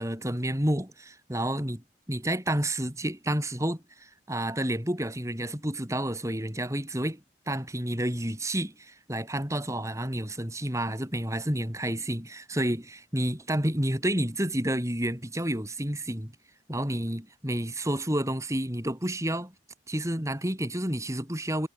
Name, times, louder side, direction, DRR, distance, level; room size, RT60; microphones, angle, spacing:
voice 1, 0.0-7.2 7.5-16.3 16.7-19.5 19.9-21.7, right 1 dB, 15° right, 5.6 m, -30 dB
head